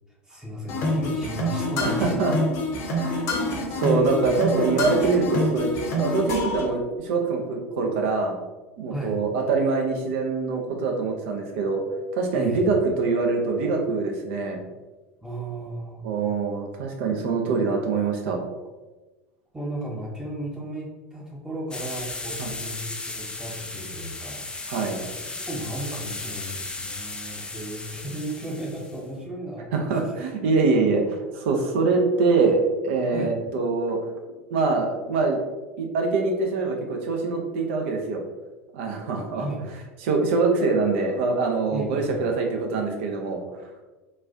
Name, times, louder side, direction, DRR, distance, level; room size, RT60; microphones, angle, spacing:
voice 1, 0.2-2.2 3.3-3.5 8.9-9.2 12.3-12.6 15.2-16.1 19.5-30.0 33.1-33.3 39.3-39.6 41.7-42.2, right 1 dB, 10° right, -3 dB, 0.8 m, -35 dB
sound 1, 0.7-6.6, left 1 dB, 45° left, 0.8 m, -26 dB
voice 2, 1.8-2.3 2.9-3.2 3.8-5.7 6.0-8.4 8.8-11.8 12.1-14.6 16.0-18.5 22.4-22.5 24.7-25.0 29.7-34.0 34.5-35.4 35.8-38.2 38.7-39.5 40.0-43.4, right 4 dB, 55° right, 2 dB, 0.6 m, -24 dB
sound 2, 21.7-29.0, left 3 dB, 10° left, 0.4 m, -36 dB
3.9 x 2.4 x 2.6 m, 1.2 s
figure-of-eight pair, 75°, 7 cm